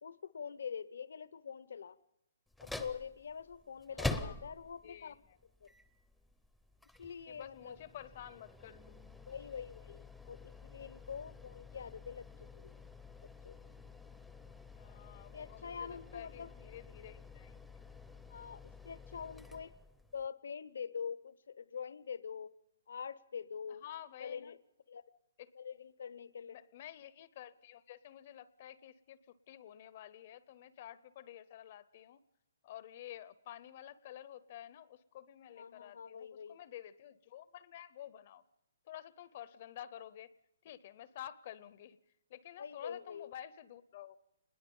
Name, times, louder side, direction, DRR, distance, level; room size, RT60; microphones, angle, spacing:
voice 1, 0.0-2.0 2.6-5.2 5.6-5.7 7.0-7.8 9.3-12.8 13.2-13.6 15.3-16.5 18.3-19.7 20.1-22.5 22.9-23.8 24.2-24.6 24.9-25.0 25.5-26.6 35.6-36.6 42.6-43.3, left 7 dB, 70° left, 0.8 m, -45 dB
sound 1, 2.5-20.3, left 2 dB, ahead, 0.7 m, -47 dB
voice 2, 3.9-4.5 4.8-5.4 7.3-9.0 14.7-17.6 23.8-24.5 25.4-25.5 26.4-32.2 32.6-38.4 38.9-40.3 40.6-42.0 42.3-44.2, left 11 dB, 35° left, 0.7 m, -51 dB
26.5 x 20.5 x 5.4 m
hypercardioid pair, 170°, 0 cm